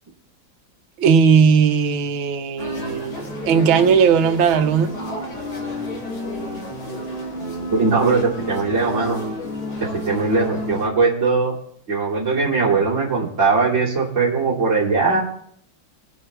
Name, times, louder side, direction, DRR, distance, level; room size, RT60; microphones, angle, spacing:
voice 1, 1.0-4.9, right 6 dB, 80° right, 7 dB, 1.7 m, -17 dB
sound 1, 2.6-10.9, left 1 dB, 85° left, 4.1 m, -30 dB
voice 2, 7.7-9.2 10.0-11.5 11.9-15.2, right 4 dB, 35° right, -6 dB, 3.1 m, -20 dB
21.0 x 9.2 x 3.3 m, 0.65 s
omnidirectional pair, 2.2 m